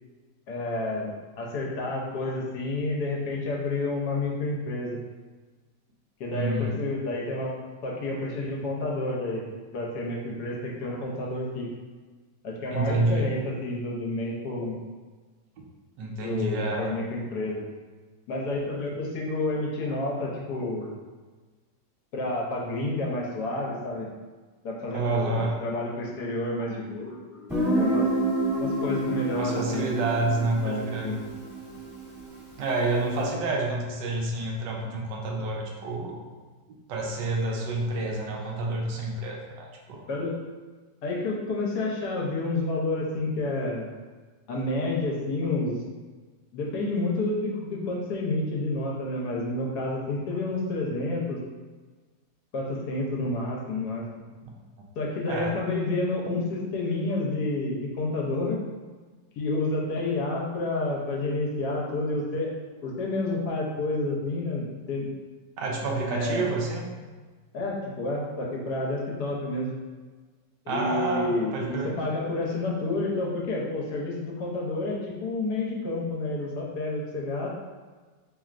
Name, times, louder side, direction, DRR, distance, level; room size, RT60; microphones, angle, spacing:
voice 1, 0.5-1.1 1.4-5.0 6.2-7.5 7.8-9.4 9.7-11.7 12.4-14.8 16.2-17.6 18.3-20.9 22.1-24.1 24.6-27.5 27.8-28.1 28.6-29.9 30.6-31.2 40.1-40.4 41.0-43.9 44.5-45.8 46.5-51.4 52.5-54.0 55.0-58.6 59.4-62.5 62.8-65.1 66.1-66.5 67.5-69.8 70.6-77.5, left 2 dB, 70° left, -2 dB, 1.2 m, -29 dB
voice 2, 6.3-6.8 12.7-13.3 16.0-16.9 24.9-25.6 29.4-31.1 32.6-36.2 36.7-40.0 54.4-54.5 55.3-55.6 65.6-66.8 70.7-71.9, right 2 dB, 80° right, -1 dB, 1.2 m, -28 dB
Guitar, 27.5-33.1, right 2 dB, ahead, 0.9 m, -29 dB
4.1 x 3.3 x 2.4 m, 1.4 s
omnidirectional pair, 1.9 m